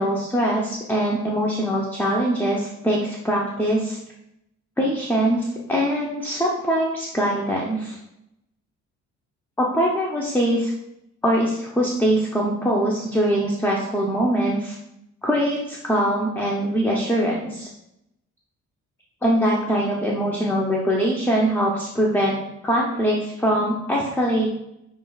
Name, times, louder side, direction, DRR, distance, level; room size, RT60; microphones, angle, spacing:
voice 1, 0.0-4.0 4.8-8.0 9.6-10.7 11.2-14.8 15.2-17.7 19.2-22.4 22.6-24.5, equal, 5° left, -3 dB, 0.7 m, -22 dB
6.6 x 3.1 x 2.4 m, 0.83 s
cardioid pair, 90°, 30 cm